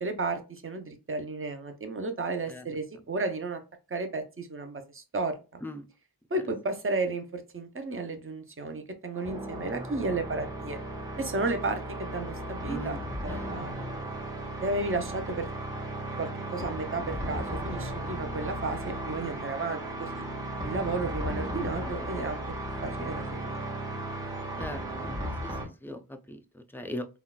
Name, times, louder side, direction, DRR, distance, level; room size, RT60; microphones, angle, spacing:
voice 1, 0.0-3.6 3.9-5.6 6.3-10.8 11.2-13.0 13.2-13.7 14.6-15.5 16.2-20.2 20.6-22.4 22.8-23.6, right 3 dB, 35° right, 0.7 m, -33 dB
sound 1, 9.2-25.6, right 1 dB, 10° right, 1.7 m, -35 dB
voice 2, 12.7-13.0 13.3-13.8 21.8-22.3 24.6-27.1, equal, 5° left, 0.4 m, -40 dB
3.7 x 2.3 x 2.3 m
wide cardioid pair, 50°, 38 cm